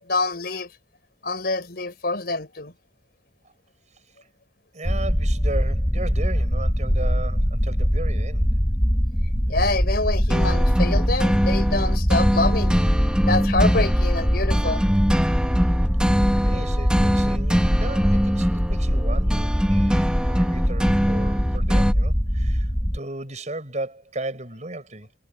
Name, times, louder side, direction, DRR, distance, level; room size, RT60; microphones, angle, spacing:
voice 1, 0.0-0.7 1.2-2.7 9.5-12.8 13.2-14.8, left 2 dB, 60° left, 5.6 m, -26 dB
voice 2, 4.7-8.5 16.4-25.1, right 2 dB, 40° right, 6.4 m, -35 dB
sound 1, 4.8-23.0, equal, 15° left, 3.6 m, -22 dB
sound 2, 10.3-21.9, equal, 5° right, 3.0 m, -24 dB
head